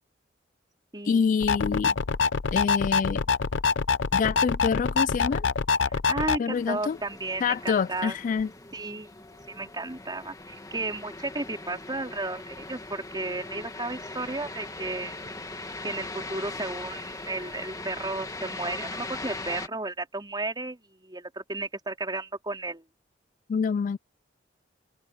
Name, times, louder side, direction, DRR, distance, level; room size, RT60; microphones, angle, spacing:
voice 1, 1.0-2.0 2.5-3.2 4.1-5.5 6.4-7.0 7.4-8.5 23.5-24.0, left 6 dB, 45° left, 0.3 m, -26 dB
sound 1, 1.4-6.4, left 5 dB, 85° left, 0.7 m, -25 dB
voice 2, 5.9-8.2 8.7-9.1 9.5-15.3 15.8-22.8, right 2 dB, 25° right, 4.1 m, -34 dB
sound 2, 6.5-19.7, left 2 dB, 20° left, 2.0 m, -40 dB
open air
head